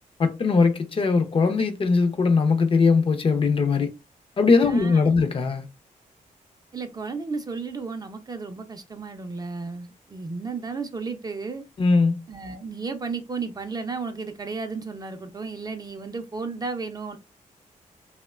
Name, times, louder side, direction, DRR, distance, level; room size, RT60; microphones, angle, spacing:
voice 1, 0.2-3.9 4.4-5.7 11.8-12.2, left 4 dB, 40° left, 0.4 m, -20 dB
voice 2, 4.6-5.2 6.7-11.6 12.3-17.2, right 4 dB, 25° right, 0.4 m, -33 dB
2.9 x 2.1 x 2.2 m
wide cardioid pair, 115°, 14 cm